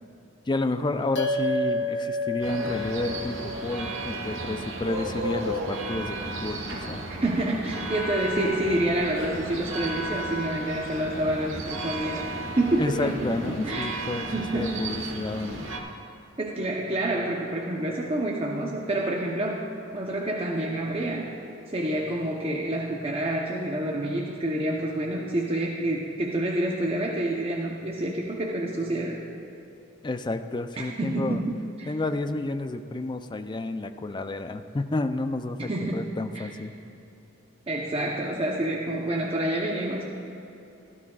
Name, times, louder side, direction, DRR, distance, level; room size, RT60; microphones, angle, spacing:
voice 1, 0.5-6.6 6.9-7.0 12.8-14.3 14.5-15.7 30.0-31.4 31.9-36.7, left 2 dB, 20° left, 8 dB, 0.4 m, -30 dB
sound 1, 1.1-5.8, left 1 dB, 60° left, 1.3 m, -31 dB
sound 2, 2.4-15.8, right 1 dB, 65° right, 1.3 m, -34 dB
voice 2, 7.1-13.9 14.3-14.7 16.4-19.6 19.9-21.3 21.7-29.2 30.8-31.9 35.6-36.1 36.3-36.5 37.7-40.0, right 1 dB, 30° right, -2 dB, 0.8 m, -28 dB
16.0 x 12.5 x 2.3 m, 2.9 s
head